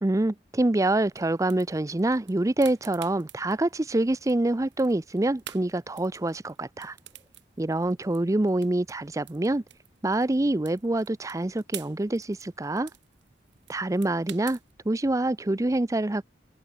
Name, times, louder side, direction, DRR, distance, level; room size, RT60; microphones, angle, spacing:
voice 1, 0.0-7.0 7.6-9.6 10.0-12.9 13.7-14.6 14.8-16.2, right 2 dB, 20° right, 0.5 m, -26 dB
sound 1, 0.9-14.7, right 13 dB, 80° right, 1.4 m, -50 dB
head